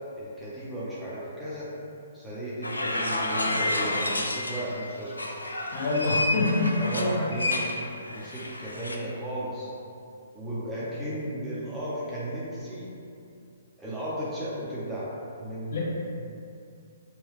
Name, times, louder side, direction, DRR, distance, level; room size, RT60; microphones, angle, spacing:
voice 1, 0.1-1.7 2.1-5.1 6.8-7.8 8.0-9.7 10.3-12.9 13.8-15.1 15.4-15.8, right 1 dB, 5° right, -10 dB, 0.6 m, -34 dB
sound 1, 2.6-4.7 5.1-9.0, left 2 dB, 75° left, 0.3 m, -30 dB
voice 2, 5.7-7.3 15.7-15.8, left 2 dB, 45° left, -5 dB, 0.7 m, -26 dB
2.9 x 2.3 x 3.2 m, 2.5 s
figure-of-eight pair, 125°, 0 cm